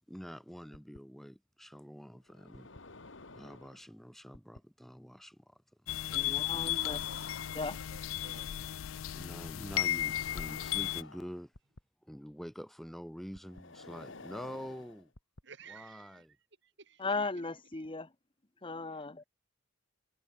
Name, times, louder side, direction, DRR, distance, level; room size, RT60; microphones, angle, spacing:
voice 1, 0.1-2.7 3.3-5.6 9.2-11.5 12.0-15.1 15.7-16.4, equal, ahead, 2.2 m, -46 dB
sound 1, 0.7-1.0 2.3-3.9 4.3-4.6 6.1-8.2 9.7-11.8 13.3-15.4, left 3 dB, 65° left, 1.9 m, -51 dB
sound 2, 5.9-11.0, left 13 dB, 85° left, 0.4 m, -35 dB
voice 2, 6.1-7.1 7.5-7.8 17.0-18.1 18.6-19.2, left 3 dB, 25° left, 1.2 m, -37 dB
voice 3, 6.8-8.7 15.4-16.3 16.6-17.3 17.7-17.8 18.9-19.1, right 5 dB, 60° right, 3.4 m, -55 dB
head